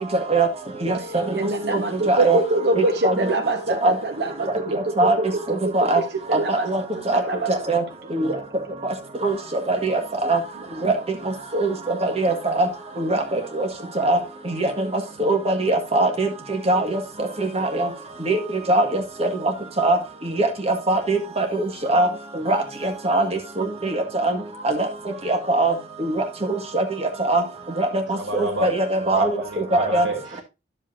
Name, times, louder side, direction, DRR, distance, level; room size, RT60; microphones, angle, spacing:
voice 1, 1.3-5.3 5.6-6.0 6.3-7.5 9.8-9.9, right 2 dB, 60° right, 1.3 m, -24 dB
voice 2, 2.1-2.4 3.0-3.1 3.8-3.9 5.0-5.2 5.7-6.0 6.3-6.8 7.1-7.2 7.5-7.8 8.1-8.3 9.2-9.3 9.7-10.4 10.8-10.9 11.5-11.7 12.0-12.7 13.0-13.7 14.0-14.2 14.6-14.7 15.2-16.3 16.7-17.0 17.5-17.9 18.3-18.4 18.7-19.3 19.8-20.0 20.4-21.5 21.9-22.1 22.5-22.6 23.0-23.3 23.6-24.4 24.6-24.8 25.3-25.7 26.0-26.1 26.7-26.8 27.3-27.4 27.8-27.9 28.4-29.3 29.7-30.1, right 2 dB, 35° right, 1.8 m, -21 dB
voice 3, 28.1-28.7 29.0-30.4, right 1 dB, 85° right, 2.8 m, -30 dB
11.0 x 7.9 x 2.7 m
head